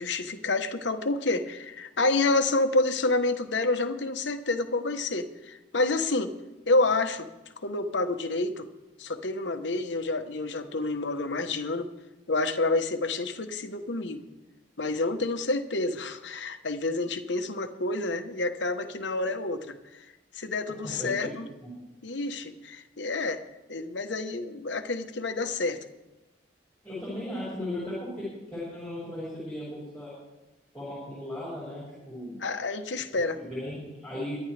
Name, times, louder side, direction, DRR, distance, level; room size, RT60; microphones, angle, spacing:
voice 1, 0.0-6.3 6.7-7.3 7.6-8.7 9.0-11.9 12.3-14.3 14.8-20.1 20.3-21.5 22.0-23.4 23.7-25.8 32.4-33.4, left 2 dB, 75° left, 8 dB, 1.1 m, -28 dB
voice 2, 20.8-21.3 21.6-21.7 26.8-30.1 30.7-32.4 33.1-34.4, left 1 dB, 5° left, -8 dB, 5.6 m, -36 dB
23.5 x 10.5 x 3.4 m, 1.1 s
head